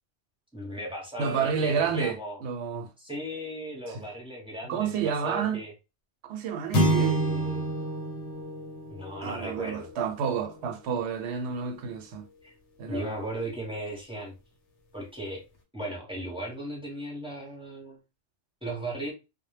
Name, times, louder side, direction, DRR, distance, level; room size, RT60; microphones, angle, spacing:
voice 1, 0.5-2.4 3.0-5.7 7.0-7.7 8.9-9.9 12.4-12.5 12.9-14.3 14.9-15.4 15.7-18.0 18.6-19.1, right 1 dB, 5° right, 0.7 m, -37 dB
voice 2, 1.2-2.9 3.9-4.0 4.7-5.6 6.3-7.2 9.2-12.2 12.8-13.2, right 6 dB, 75° right, 0.8 m, -30 dB
sound 1, 6.7-11.2, right 1 dB, 85° left, 1.0 m, -29 dB
2.1 x 2.1 x 3.1 m
omnidirectional pair, 1.2 m